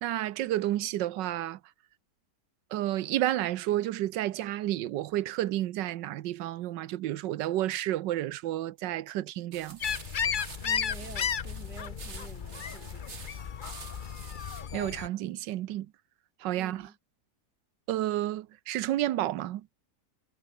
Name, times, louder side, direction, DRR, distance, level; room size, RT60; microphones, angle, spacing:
voice 1, 0.0-1.6 2.7-9.8 14.7-15.9 16.4-16.9 17.9-19.7, right 14 dB, 90° right, 1.4 m, -31 dB
sound 1, 9.5-14.6, right 4 dB, 40° right, 2.2 m, -48 dB
sound 2, 9.8-15.1, left 7 dB, 50° left, 0.6 m, -34 dB
voice 2, 10.6-13.1 16.6-16.9, right 4 dB, 70° right, 3.5 m, -48 dB
omnidirectional pair, 1.9 m